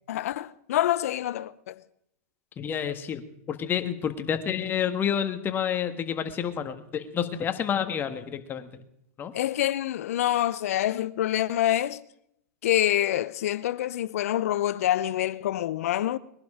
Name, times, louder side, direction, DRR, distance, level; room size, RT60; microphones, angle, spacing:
voice 1, 0.1-1.8 9.3-12.0 12.6-16.2, left 13 dB, 75° left, 0.8 m, -26 dB
voice 2, 2.6-3.2 3.5-8.8 9.2-9.3, left 8 dB, 25° left, 1.6 m, -29 dB
21.0 x 11.5 x 5.0 m
hypercardioid pair, 130°, 8 cm